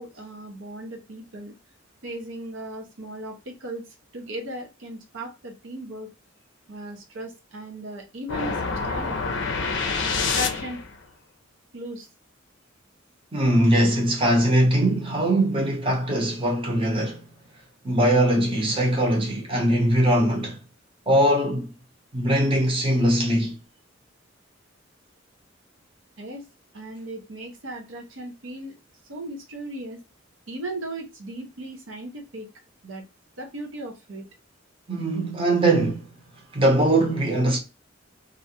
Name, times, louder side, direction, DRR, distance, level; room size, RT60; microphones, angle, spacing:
voice 1, 0.0-1.5 2.0-3.9 4.1-6.1 6.7-9.2 9.6-9.7 10.1-10.8 11.7-12.1 26.2-26.5 26.7-28.7 29.1-30.0 30.5-32.5 32.8-33.0 33.4-34.3, right 1 dB, 75° right, 0.7 m, -37 dB
sound 1, 8.3-11.0, left 4 dB, 65° left, 0.5 m, -27 dB
voice 2, 13.3-17.3 17.8-20.6 21.1-21.7 22.1-23.6 34.9-36.1 36.5-37.6, right 1 dB, 30° right, 0.8 m, -21 dB
2.4 x 2.2 x 2.7 m
head